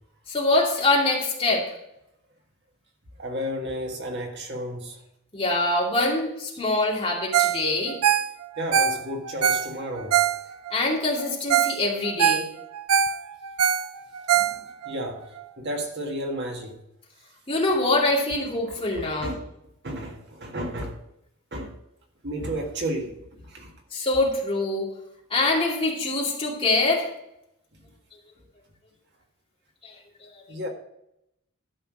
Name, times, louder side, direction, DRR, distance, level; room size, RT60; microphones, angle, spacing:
voice 1, 0.3-1.6 5.3-8.0 10.7-12.4 17.5-19.3 23.9-24.9 25.3-27.0 29.8-29.9 30.2-30.3, left 2 dB, 25° left, 2.6 m, -24 dB
voice 2, 3.2-5.0 8.6-10.2 14.3-15.3 15.6-16.8 18.9-19.5 19.8-21.0 21.5-21.7 22.2-23.2 23.4-23.7 30.5-30.7, equal, 50° right, 1.8 m, -32 dB
Ringtone, 7.3-7.6 7.9-10.8 11.2-11.3 11.5-11.8 12.1-14.9 15.4-15.5, right 9 dB, 90° right, 0.6 m, -23 dB
12.5 x 5.8 x 6.2 m
head